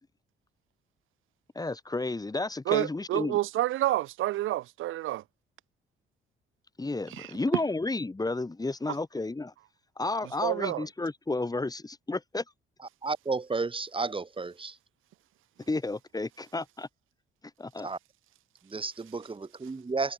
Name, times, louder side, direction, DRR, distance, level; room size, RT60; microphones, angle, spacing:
voice 1, 1.5-3.4 6.8-9.5 10.0-12.4 15.7-16.9 17.6-17.9, left 2 dB, 20° left, 4.7 m, -32 dB
voice 2, 2.6-5.2 7.1-7.3 10.4-10.9, right 15 dB, 90° right, 6.9 m, -29 dB
voice 3, 13.0-14.8 17.8-18.0 18.6-20.1, right 4 dB, 25° right, 5.3 m, -32 dB
cardioid pair, 90°, 20 cm